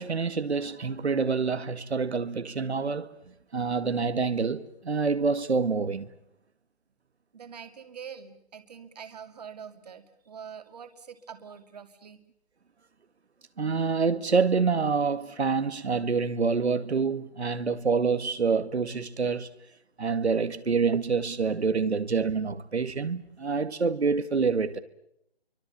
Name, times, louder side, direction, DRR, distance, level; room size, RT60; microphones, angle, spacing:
voice 1, 0.0-3.1 3.5-6.1 13.6-19.5 20.0-24.8, right 5 dB, 90° right, 2.1 m, -27 dB
voice 2, 7.3-12.2, right 7 dB, 40° right, 2.4 m, -44 dB
29.0 x 24.5 x 6.8 m
hypercardioid pair, 170°, 32 cm